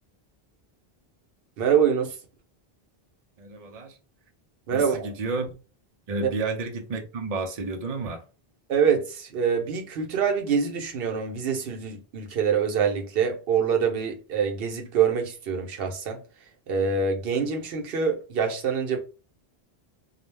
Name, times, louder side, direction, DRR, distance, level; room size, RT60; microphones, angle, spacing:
voice 1, 1.6-2.1 4.7-5.0 6.2-6.3 8.7-16.2 16.7-19.0, right 6 dB, 70° right, 0.9 m, -25 dB
voice 2, 3.4-4.0 4.7-5.5 6.1-8.2, right 3 dB, 45° right, 0.6 m, -31 dB
2.3 x 2.1 x 3.2 m
omnidirectional pair, 1.0 m